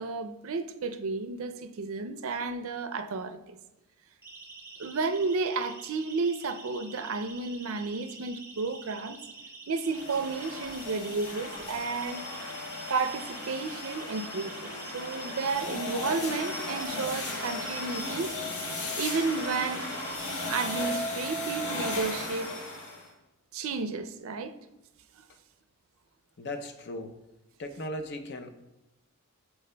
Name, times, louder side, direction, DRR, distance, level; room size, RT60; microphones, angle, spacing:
voice 1, 0.0-3.6 4.8-9.2 9.7-12.2 12.9-18.3 18.9-20.2 20.5-22.5 23.5-24.5, right 4 dB, 65° right, 0.4 m, -32 dB
Siren, 4.2-21.0, right 3 dB, 10° right, 0.8 m, -47 dB
sound 1, 9.8-23.1, left 2 dB, 85° left, 1.5 m, -36 dB
voice 2, 26.4-27.2 27.6-28.5, left 1 dB, 50° left, 0.5 m, -37 dB
13.0 x 4.5 x 2.2 m
head